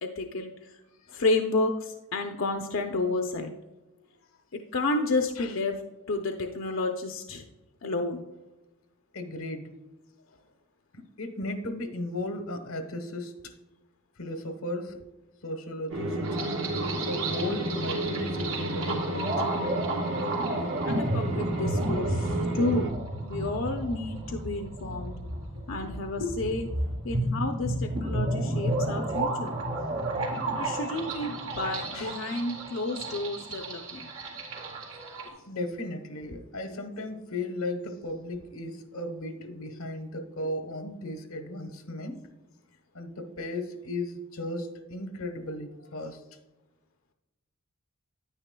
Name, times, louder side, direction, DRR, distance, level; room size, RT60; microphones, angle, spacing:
voice 1, 0.0-0.8 1.1-3.5 4.5-5.8 6.1-7.5 7.8-8.2 20.8-22.9 23.2-25.1 25.7-26.7 27.0-29.6 30.6-34.1 39.4-39.6, left 2 dB, 65° left, 4 dB, 0.6 m, -31 dB
voice 2, 9.1-9.7 10.9-13.5 14.2-15.0 15.4-16.2 17.0-19.4 20.6-21.4 25.7-25.9 26.2-26.3 30.8-30.9 31.9-32.2 35.5-42.2 42.9-46.2, left 1 dB, 90° left, 7 dB, 1.1 m, -36 dB
sound 1, 15.9-22.9, right 1 dB, 65° right, 1.1 m, -32 dB
sound 2, 16.2-35.3, right 2 dB, 80° right, 2.7 m, -32 dB
9.9 x 9.8 x 2.2 m, 1.1 s
head